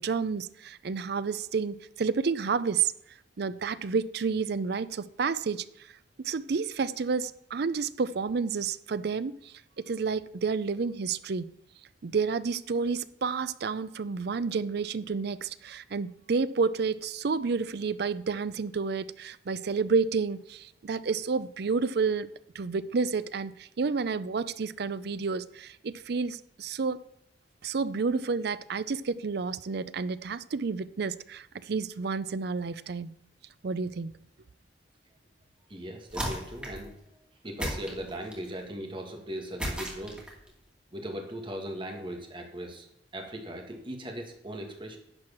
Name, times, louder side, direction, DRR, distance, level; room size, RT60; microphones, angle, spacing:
voice 1, 0.0-2.9 3.4-5.6 6.2-9.5 9.9-11.5 12.0-22.3 22.5-27.0 27.6-33.1 33.6-34.1, right 5 dB, 60° right, 0.5 m, -30 dB
voice 2, 35.7-36.9 37.4-40.3 40.9-42.8 43.1-45.0, right 1 dB, 30° right, 1.9 m, -38 dB
sound 1, 36.1-36.9 37.6-38.5 39.6-40.5, equal, 5° right, 2.5 m, -35 dB
10.5 x 4.8 x 7.3 m
head